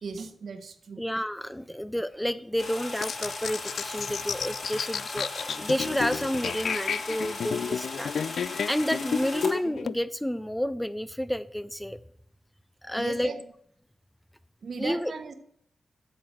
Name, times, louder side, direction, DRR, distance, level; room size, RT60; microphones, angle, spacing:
voice 1, 0.0-1.0 13.0-13.4 14.6-15.3, right 4 dB, 65° right, 8 dB, 1.3 m, -37 dB
voice 2, 1.0-8.1 8.7-12.0 12.8-13.3 14.8-15.1, equal, 5° left, 13 dB, 0.4 m, -30 dB
sound 1, 2.6-9.5, left 3 dB, 60° left, 3.3 m, -38 dB
sound 2, 3.0-10.0, left 6 dB, 80° left, 0.3 m, -32 dB
8.7 x 7.6 x 6.5 m, 0.70 s
wide cardioid pair, 145°, 0 cm